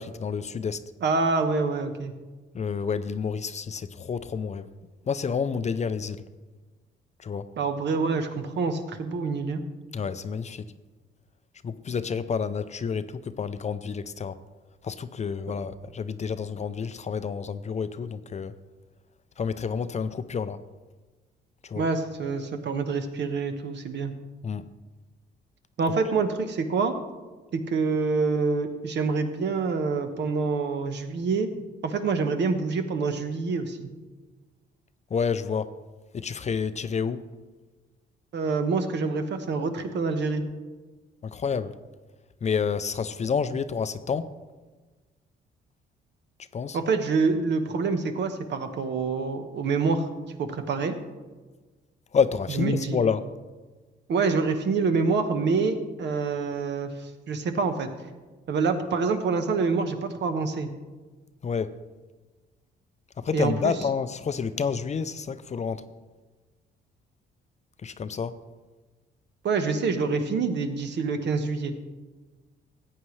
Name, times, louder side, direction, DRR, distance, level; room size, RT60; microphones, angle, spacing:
voice 1, 0.0-0.8 2.5-4.7 5.1-6.2 7.2-7.5 9.9-10.7 11.6-14.4 14.8-18.6 19.4-20.6 21.6-21.9 24.4-24.7 35.1-35.7 36.1-37.2 41.2-41.8 42.4-44.3 46.5-46.8 52.1-53.2 61.4-61.7 63.2-65.8 67.8-68.4, left 6 dB, 35° left, 12 dB, 0.5 m, -29 dB
voice 2, 1.0-2.1 7.6-9.6 21.8-24.1 25.8-26.9 27.5-31.5 31.8-33.9 38.3-40.4 46.7-50.1 50.4-50.9 52.5-53.0 54.1-56.9 57.3-57.9 58.5-60.7 63.3-63.7 69.4-71.7, right 4 dB, 60° right, 7 dB, 1.1 m, -26 dB
14.5 x 8.7 x 3.2 m, 1.3 s
cardioid pair, 90°, 20 cm